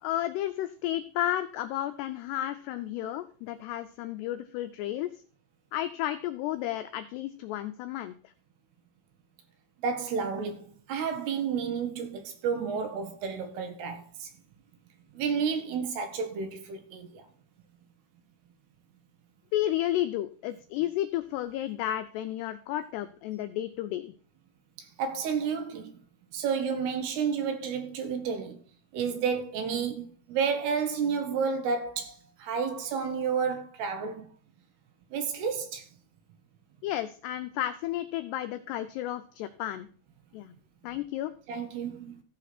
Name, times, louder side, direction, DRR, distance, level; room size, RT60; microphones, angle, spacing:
voice 1, 0.0-5.2 5.7-8.3 19.5-24.1 36.8-39.9 40.3-40.5 40.8-41.3, left 13 dB, 90° left, 2.3 m, -32 dB
voice 2, 9.8-14.3 15.1-17.3 24.8-26.0 26.3-28.6 28.9-34.3 35.1-35.9 41.5-42.2, right 6 dB, 70° right, 2.9 m, -31 dB
14.5 x 5.0 x 6.0 m
omnidirectional pair, 5.5 m